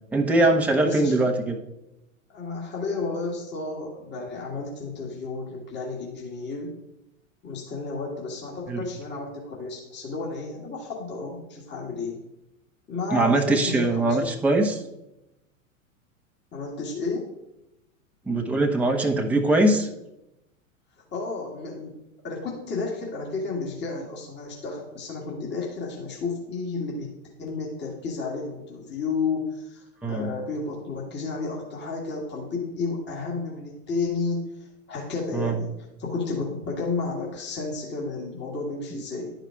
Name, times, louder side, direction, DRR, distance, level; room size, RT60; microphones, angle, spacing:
voice 1, 0.1-1.6 8.7-8.8 13.1-14.8 18.3-19.9 30.0-30.3 35.3-35.6 38.9-39.0, right 2 dB, 5° right, 1 dB, 0.9 m, -22 dB
voice 2, 0.8-1.1 2.3-6.7 7.4-12.2 12.9-14.3 16.5-17.3 21.1-22.0 22.2-27.1 27.4-35.7 36.0-39.3, left 3 dB, 25° left, -2 dB, 2.1 m, -32 dB
11.0 x 4.9 x 4.6 m, 0.90 s
hypercardioid pair, 100°, 41 cm